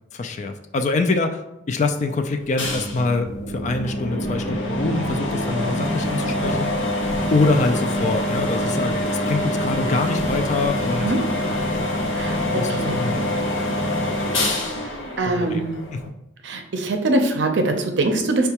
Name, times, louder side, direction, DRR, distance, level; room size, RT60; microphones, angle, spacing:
voice 1, 0.1-1.4 1.7-6.7 7.3-11.5 12.5-13.3 15.2-16.0, left 3 dB, 40° left, 7 dB, 0.3 m, -25 dB
sound 1, 2.6-16.1, left 1 dB, 90° left, 0.7 m, -25 dB
voice 2, 15.2-15.8 16.4-18.5, right 2 dB, 70° right, 4 dB, 0.5 m, -22 dB
5.4 x 2.3 x 2.9 m, 0.89 s
head